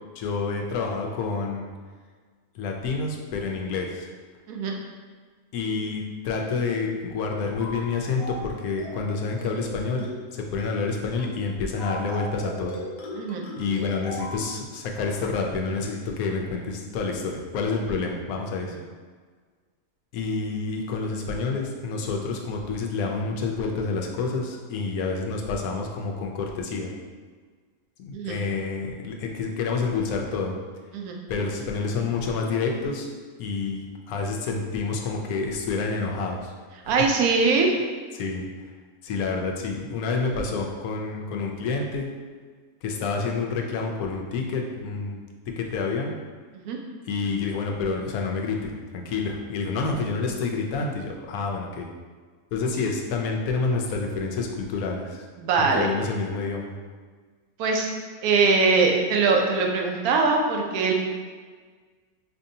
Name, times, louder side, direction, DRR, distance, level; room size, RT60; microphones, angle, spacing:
voice 1, 0.1-1.7 2.5-4.1 5.5-12.8 13.6-18.8 20.1-26.9 28.0-30.5 31.3-33.1 33.4-36.5 36.8-37.0 38.1-38.5 39.0-42.1 42.8-45.2 45.6-46.1 47.1-51.9 52.5-55.3 55.6-56.7, left 4 dB, 85° left, 1 dB, 1.1 m, -28 dB
sound 1, 7.6-7.9 8.2-8.5 8.8-9.1 9.4-9.7 10.0-10.3 10.6-10.9 11.2-11.4 11.8-14.4, left 1 dB, 55° left, 0.8 m, -37 dB
voice 2, 36.9-37.7 46.5-46.8 55.4-55.9 57.6-57.9 58.2-60.9, right 4 dB, 90° right, 1 dB, 1.1 m, -22 dB
4.4 x 2.7 x 2.7 m, 1.5 s
omnidirectional pair, 1.5 m